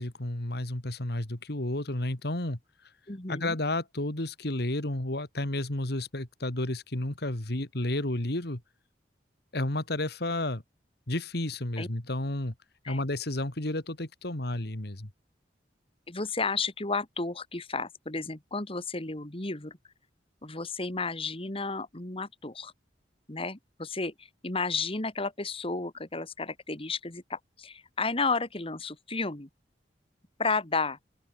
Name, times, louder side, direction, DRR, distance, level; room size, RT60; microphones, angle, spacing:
voice 1, 0.0-2.6 3.3-8.6 9.5-10.6 11.1-12.5 12.9-15.1, left 1 dB, 60° left, 2.5 m, -31 dB
voice 2, 3.1-3.6 11.8-11.9 12.8-13.0 16.1-19.8 20.4-22.7 23.3-29.5 30.4-31.0, left 4 dB, 30° left, 2.3 m, -32 dB
open air
head